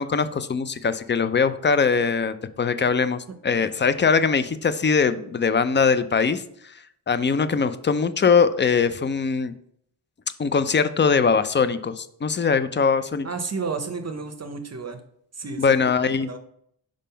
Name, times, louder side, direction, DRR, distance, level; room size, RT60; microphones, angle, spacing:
voice 1, 0.0-6.7 7.1-9.5 10.4-13.3 15.6-16.3, left 5 dB, 30° left, 13 dB, 0.4 m, -21 dB
voice 2, 13.2-15.0 15.4-15.8 16.3-16.4, right 4 dB, 40° right, 7 dB, 0.7 m, -31 dB
5.0 x 3.6 x 5.5 m, 0.69 s
wide cardioid pair, 100°, 41 cm